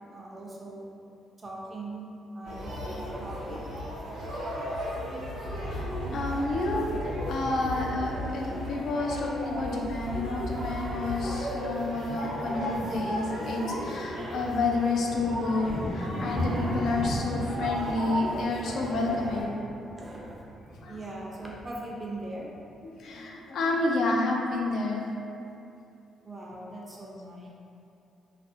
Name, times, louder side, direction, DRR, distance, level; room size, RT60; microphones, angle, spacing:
voice 1, 0.1-0.9 1.4-3.6 19.9-20.4 20.9-22.5 26.2-27.5, right 2 dB, 25° right, -3 dB, 0.4 m, -40 dB
sound 1, 2.4-19.4, equal, 90° right, 0.7 m, -35 dB
voice 2, 5.6-19.6 20.8-21.0 22.8-25.1, left 2 dB, 65° left, -1 dB, 0.3 m, -30 dB
sound 2, 7.5-9.0 10.3-10.4 10.6-10.8 11.1-23.2, equal, 50° left, 0.8 m, -39 dB
2.4 x 2.0 x 2.6 m, 2.6 s
cardioid pair, 90°, 0 cm